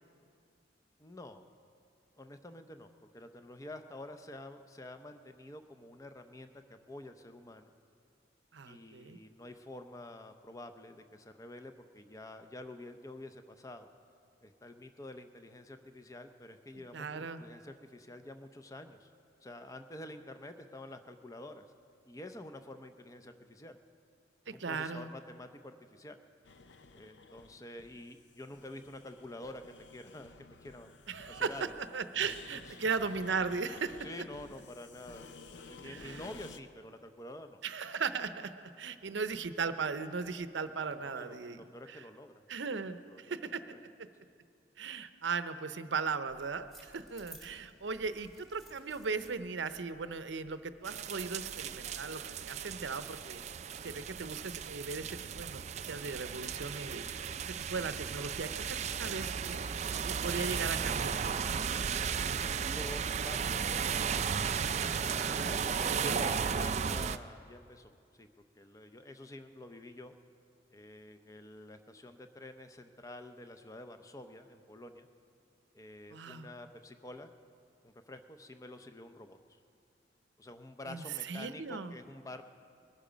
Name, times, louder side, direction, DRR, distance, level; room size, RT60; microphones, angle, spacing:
voice 1, 1.0-1.5 2.2-7.7 8.7-13.9 14.4-19.1 19.4-21.6 22.1-23.8 24.5-26.2 26.9-30.9 31.3-31.8 32.7-32.8 34.0-37.6 41.0-42.3 42.8-43.3 43.7-43.8 44.2-44.3 47.6-47.9 62.6-64.0 65.2-68.3 68.5-70.1 70.7-75.1 75.7-77.3 77.8-79.4 80.4-82.4, left 1 dB, 20° left, 8 dB, 0.6 m, -48 dB
voice 2, 8.5-9.2 16.9-17.4 24.5-25.1 31.1-31.7 31.9-34.1 35.8-36.2 37.6-38.5 38.8-42.0 42.5-43.6 44.8-53.4 53.8-58.5 58.9-59.6 60.1-61.2 65.1-66.2 76.1-76.5 80.9-81.9, right 5 dB, 85° right, 11 dB, 0.7 m, -37 dB
sound 1, 26.4-36.6, left 4 dB, 80° left, 0.6 m, -53 dB
sound 2, 46.3-51.7, right 1 dB, ahead, 1.5 m, -58 dB
sound 3, 50.8-67.2, right 6 dB, 40° right, 0.4 m, -35 dB
21.0 x 12.0 x 5.1 m, 2.3 s
head